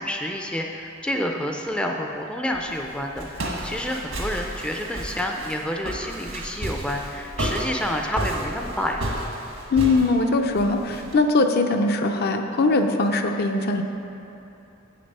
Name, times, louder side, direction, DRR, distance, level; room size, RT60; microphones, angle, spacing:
voice 1, 0.0-9.0, equal, 5° left, 2 dB, 0.4 m, -29 dB
Walk footsteps, 2.5-11.1, right 1 dB, 75° right, 1.3 m, -32 dB
voice 2, 9.7-13.8, left 3 dB, 50° left, 5 dB, 0.5 m, -21 dB
7.9 x 6.7 x 5.4 m, 2.9 s
head